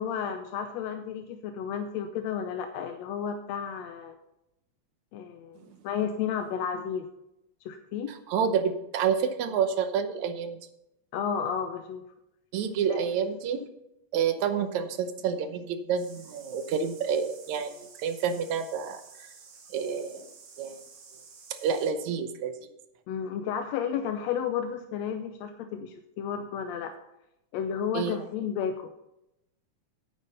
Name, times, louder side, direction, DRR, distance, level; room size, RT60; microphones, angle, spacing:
voice 1, 0.0-4.2 5.1-5.6 5.8-7.1 7.7-8.1 11.1-12.0 12.9-13.0 23.1-26.9 27.5-28.9, left 7 dB, 75° left, 6 dB, 1.8 m, -32 dB
voice 2, 8.1-10.6 12.5-13.6 14.1-19.0 19.7-20.3 20.6-20.8 21.6-22.6 27.9-28.2, right 7 dB, 75° right, 9 dB, 2.3 m, -29 dB
sound 1, 16.0-21.9, right 5 dB, 60° right, 2.9 m, -51 dB
9.8 x 9.2 x 5.4 m, 0.87 s
omnidirectional pair, 3.3 m